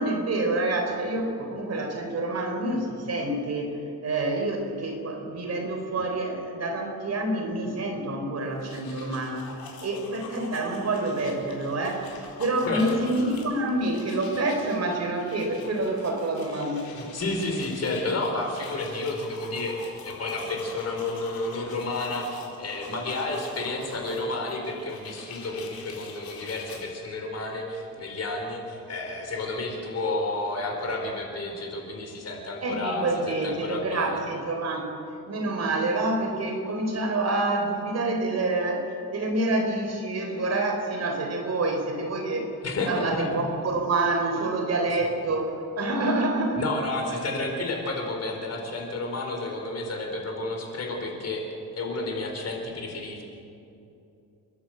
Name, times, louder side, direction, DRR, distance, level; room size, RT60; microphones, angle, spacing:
voice 1, 0.0-12.1 12.4-16.9 32.6-34.9 35.3-42.6 42.9-46.6 47.1-47.2, right 2 dB, 45° right, 3 dB, 3.8 m, -27 dB
sound 1, 8.5-26.9, left 4 dB, 75° left, 4.4 m, -45 dB
voice 2, 12.7-13.0 17.0-34.1 42.6-43.3 46.6-51.4 51.7-53.2, left 2 dB, 45° left, 2 dB, 4.3 m, -31 dB
30.0 x 11.5 x 7.8 m, 2.7 s
cardioid pair, 145°, 36 cm